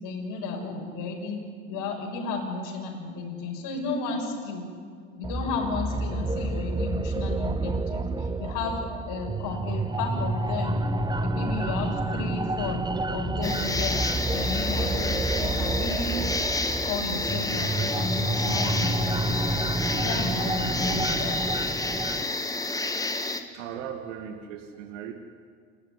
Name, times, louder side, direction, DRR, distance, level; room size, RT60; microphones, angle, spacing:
voice 1, 0.0-1.4 1.7-4.6 5.1-8.8 9.1-10.8 11.2-12.8 13.1-16.2 16.8-19.5 19.9-21.4, left 4 dB, 55° left, 1 dB, 6.3 m, -33 dB
sound 1, 5.2-22.2, right 2 dB, 10° right, 1.0 m, -29 dB
sound 2, 13.4-23.4, left 2 dB, 10° left, 1.9 m, -29 dB
voice 2, 23.5-25.1, right 9 dB, 70° right, 5 dB, 2.1 m, -37 dB
28.5 x 13.0 x 9.7 m, 2.1 s
hypercardioid pair, 85°, 38 cm